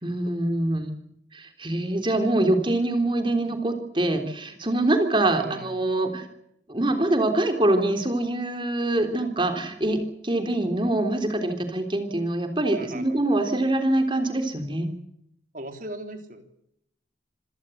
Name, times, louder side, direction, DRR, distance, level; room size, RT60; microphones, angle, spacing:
voice 1, 0.0-0.9 1.3-6.2 6.7-14.9, right 1 dB, 25° right, 6 dB, 3.4 m, -24 dB
voice 2, 5.3-5.7 12.8-13.2 15.5-16.4, right 1 dB, 45° right, 7 dB, 3.5 m, -38 dB
26.0 x 17.0 x 7.9 m, 0.77 s
head